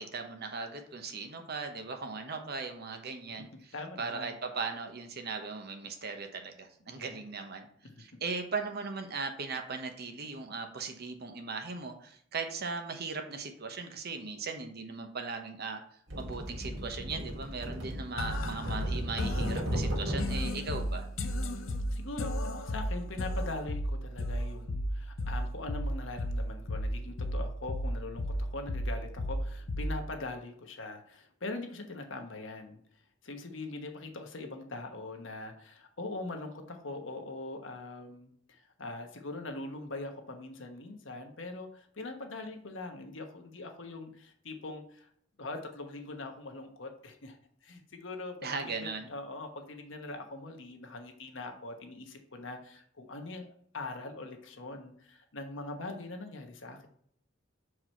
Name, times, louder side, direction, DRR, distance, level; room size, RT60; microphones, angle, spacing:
voice 1, 0.0-7.7 8.0-15.8 16.1-21.1 48.4-49.1, right 4 dB, 55° right, 5 dB, 1.0 m, -38 dB
voice 2, 3.7-4.3 6.9-7.2 7.8-8.0 21.9-22.4 22.6-32.8 33.2-45.1 45.4-47.4 47.6-48.4 48.8-53.5 53.7-56.9, left 2 dB, 70° left, 5 dB, 1.1 m, -42 dB
sound 1, 16.1-20.5 21.6-21.8, equal, 75° right, 2.2 m, -36 dB
sound 2, 18.2-30.2, equal, 85° left, 0.7 m, -34 dB
6.2 x 4.9 x 4.4 m, 0.64 s
head